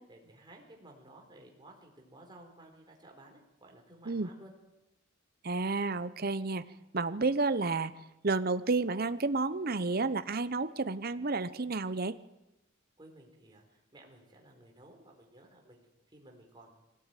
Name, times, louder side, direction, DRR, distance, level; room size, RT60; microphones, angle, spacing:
voice 1, 0.1-4.5 13.0-16.7, right 1 dB, 20° right, 1 dB, 4.5 m, -55 dB
voice 2, 5.4-6.6 6.9-7.9 8.2-12.2, right 3 dB, 45° right, 13 dB, 0.9 m, -31 dB
23.0 x 17.5 x 9.3 m, 0.99 s
head